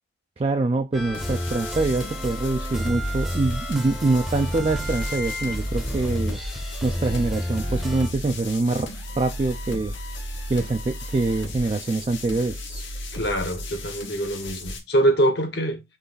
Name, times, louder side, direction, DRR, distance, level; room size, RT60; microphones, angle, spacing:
voice 1, 0.4-6.4 6.8-8.9 9.1-9.9 10.5-12.8, right 3 dB, 30° right, 0.3 m, -24 dB
sound 1, 0.9-8.1, equal, ahead, 0.6 m, -30 dB
sound 2, 1.1-14.8, left 1 dB, 80° left, 1.4 m, -35 dB
voice 2, 13.1-15.8, right 1 dB, 60° left, 1.0 m, -24 dB
3.9 x 3.2 x 3.8 m
head